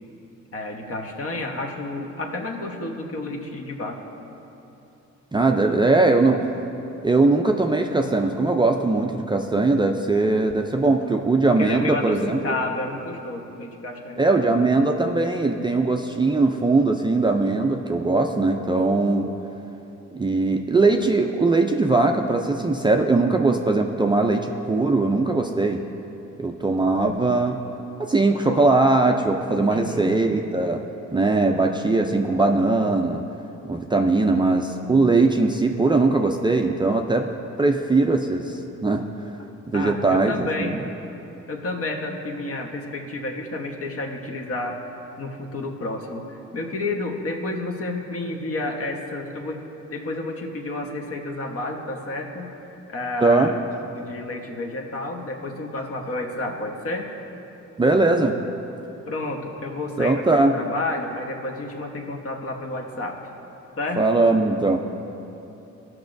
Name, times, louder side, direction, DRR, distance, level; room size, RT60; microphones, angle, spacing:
voice 1, 0.5-4.1 10.9-11.0 11.6-14.5 29.7-30.2 39.7-40.8 41.5-49.6 49.9-57.1 59.1-63.2 63.8-64.0, left 2 dB, 50° left, 2 dB, 1.2 m, -30 dB
voice 2, 5.3-6.4 7.0-12.5 14.2-19.3 20.1-25.8 26.4-27.6 28.0-30.8 31.1-33.2 33.6-37.3 37.6-39.1 39.7-40.8 53.2-53.5 57.8-58.4 60.0-60.5 64.0-64.8, right 3 dB, 15° right, 3 dB, 0.4 m, -20 dB
16.0 x 6.1 x 2.6 m, 3.0 s
cardioid pair, 90°, 30 cm